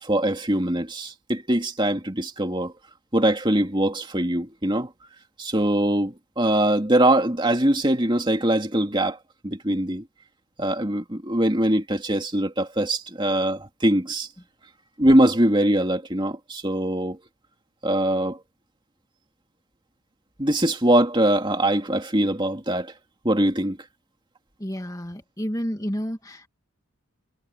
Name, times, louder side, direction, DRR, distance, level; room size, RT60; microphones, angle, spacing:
voice 1, 0.0-2.7 3.1-4.9 5.4-9.2 9.4-10.0 10.6-14.3 15.0-17.2 17.8-18.4 20.4-22.9 23.2-23.8, right 1 dB, 20° right, 2.6 m, -22 dB
voice 2, 24.6-26.5, equal, 15° left, 2.1 m, -30 dB
head